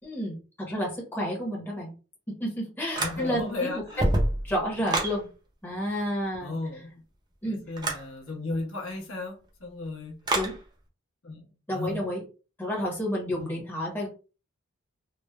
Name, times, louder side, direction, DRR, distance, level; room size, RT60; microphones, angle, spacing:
voice 1, 0.0-1.9 2.3-3.8 4.4-5.3 5.6-6.6 7.4-7.6 10.3-10.6 11.7-12.2 12.6-14.1, equal, 10° left, 0.7 m, -30 dB
sound 1, 2.9-3.5 3.9-5.2 7.8-8.1 10.3-10.6, right 1 dB, 20° right, 0.4 m, -27 dB
voice 2, 3.0-4.0 6.4-7.0 7.5-10.2 11.2-11.4 11.7-12.0 13.3-13.6, left 2 dB, 75° left, 0.9 m, -35 dB
3.0 x 2.1 x 2.2 m
head